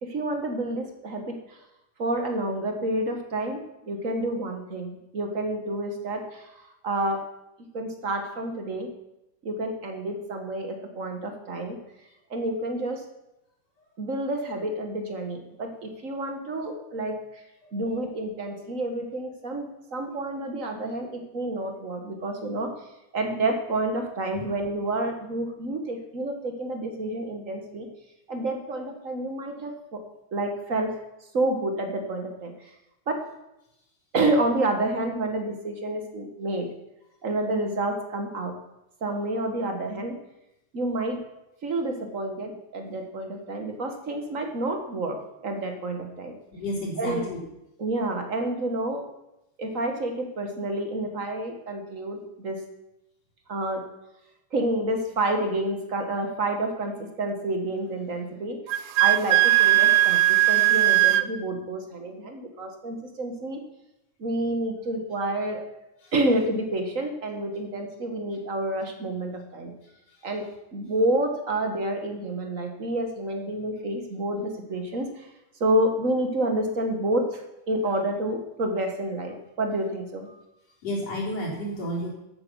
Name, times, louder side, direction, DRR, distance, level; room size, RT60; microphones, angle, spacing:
voice 1, 0.0-1.6 2.0-3.6 3.9-7.2 7.7-8.9 9.4-11.8 12.3-13.0 14.0-17.2 17.7-22.7 23.1-27.9 28.3-30.0 30.3-30.9 31.3-32.5 33.1-33.2 34.1-36.7 37.2-38.5 39.0-40.1 40.7-41.2 41.6-46.3 47.0-47.3 47.8-49.1 49.6-52.6 53.5-53.8 54.5-58.6 59.0-60.2 60.5-63.6 64.2-65.6 66.1-69.7 70.2-70.4 70.7-75.3 75.6-80.3, right 1 dB, 45° right, 4 dB, 1.1 m, -29 dB
voice 2, 17.6-18.0 20.1-20.2 24.3-24.4 46.5-47.4 66.0-66.1 70.1-70.3 80.3-80.4 80.8-82.1, equal, 55° left, -3 dB, 4.7 m, -32 dB
Wind instrument woodwind instrument, 58.7-61.3, right 16 dB, 85° right, 1.4 m, -19 dB
13.5 x 8.8 x 6.2 m, 0.89 s
omnidirectional pair, 3.5 m